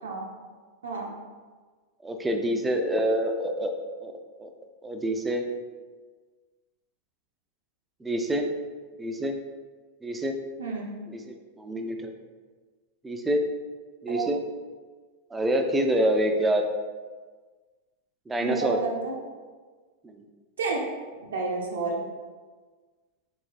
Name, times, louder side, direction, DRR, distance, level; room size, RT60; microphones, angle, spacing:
voice 1, 2.0-3.7 4.0-4.1 4.4-4.5 4.8-5.4 8.0-8.5 9.0-9.4 10.0-10.3 11.1-12.1 13.0-13.5 14.0-14.4 15.3-16.7 18.3-18.8 20.1-20.2, right 1 dB, 10° right, 4 dB, 0.3 m, -26 dB
voice 2, 18.4-19.1 20.6-20.9 21.2-22.0, right 4 dB, 70° right, -2 dB, 0.5 m, -30 dB
3.8 x 3.1 x 2.4 m, 1.4 s
figure-of-eight pair, 90°, 0 cm